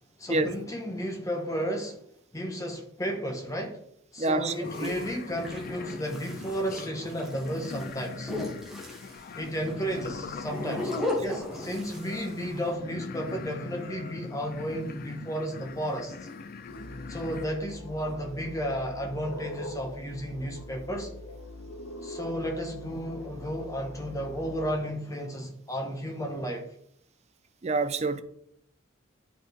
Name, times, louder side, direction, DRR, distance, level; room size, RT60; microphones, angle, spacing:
voice 1, 0.2-2.0 2.3-3.8 4.1-8.3 9.4-10.9 11.2-16.1 17.1-21.1 22.0-26.6, equal, 15° left, 1.1 m, -33 dB
voice 2, 4.2-4.5 4.8-4.9 27.6-28.2, right 3 dB, 30° right, 0.5 m, -26 dB
sound 1, 4.5-12.7, left 2 dB, ahead, 1.1 m, -37 dB
sound 2, 4.6-17.5, left 4 dB, 45° left, 0.4 m, -41 dB
sound 3, 16.7-24.7, left 1 dB, 85° left, 1.1 m, -43 dB
11.0 x 4.2 x 3.4 m
head